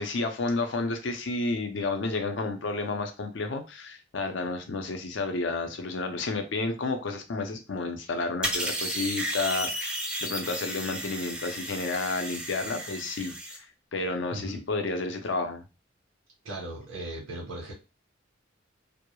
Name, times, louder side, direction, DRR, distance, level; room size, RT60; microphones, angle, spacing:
voice 1, 0.0-15.6, left 3 dB, 65° left, 6 dB, 0.5 m, -31 dB
sound 1, 8.4-13.6, right 1 dB, 5° right, 0.3 m, -33 dB
voice 2, 14.3-14.6 16.4-17.7, right 1 dB, 85° right, -3 dB, 0.7 m, -37 dB
2.2 x 2.0 x 3.0 m, 0.29 s
head